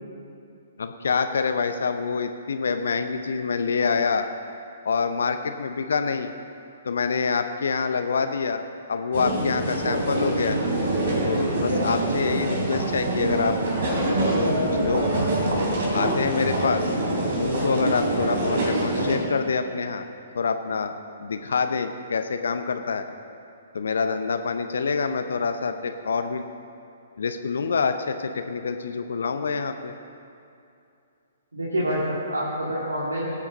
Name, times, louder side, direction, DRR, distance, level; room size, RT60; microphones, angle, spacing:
voice 1, 0.8-4.3 4.8-6.3 6.8-8.6 8.9-10.6 11.2-13.6 14.3-15.1 15.9-16.9 17.4-20.1 20.3-23.1 23.7-26.4 27.2-29.9, left 5 dB, 60° left, 8 dB, 0.7 m, -26 dB
sound 1, 9.1-19.2, right 1 dB, 55° right, 3.5 m, -25 dB
voice 2, 31.5-33.4, equal, 75° right, -5 dB, 2.2 m, -27 dB
18.0 x 8.4 x 5.3 m, 2.6 s
figure-of-eight pair, 120°, 0 cm